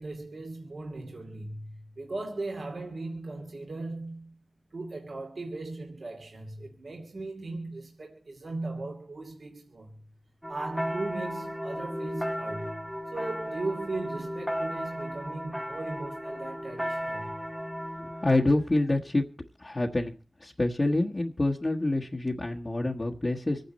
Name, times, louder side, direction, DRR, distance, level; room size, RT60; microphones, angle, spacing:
voice 1, 0.0-4.4 4.7-10.0 10.5-12.9 13.1-17.4, right 2 dB, 70° right, 2.5 m, -38 dB
sound 1, 10.4-18.4, equal, ahead, 0.9 m, -35 dB
voice 2, 18.0-19.2 19.6-20.2 20.4-23.6, left 2 dB, 35° left, 1.4 m, -27 dB
26.0 x 9.4 x 4.2 m
wide cardioid pair, 65°, 0 cm